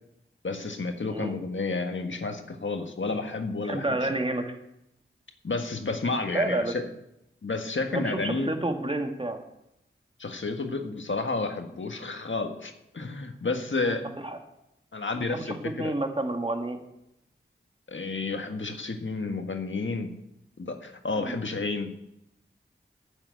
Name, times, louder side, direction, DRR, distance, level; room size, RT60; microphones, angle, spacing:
voice 1, 0.4-4.0 5.4-6.9 7.4-8.5 10.2-14.1 14.9-15.9 17.9-20.1 20.6-21.9, left 3 dB, 65° left, 5 dB, 1.6 m, -31 dB
voice 2, 3.6-4.5 6.3-6.7 7.9-9.4 13.8-14.4 15.2-16.8 21.1-21.4, right 1 dB, 25° right, 4 dB, 2.0 m, -30 dB
9.9 x 7.3 x 9.1 m, 0.82 s
cardioid pair, 40°, 21 cm